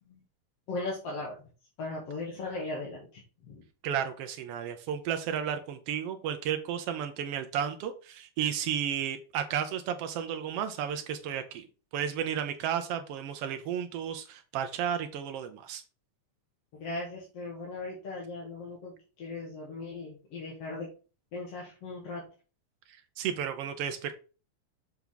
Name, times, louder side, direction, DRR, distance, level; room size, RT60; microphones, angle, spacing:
voice 1, 0.7-1.3 1.8-3.6 16.7-20.9 21.3-22.2, left 2 dB, 55° left, -3 dB, 2.4 m, -38 dB
voice 2, 3.8-11.7 11.9-15.8 22.9-24.1, right 9 dB, 85° right, 7 dB, 1.3 m, -33 dB
7.0 x 4.6 x 3.8 m, 0.35 s
omnidirectional pair, 3.5 m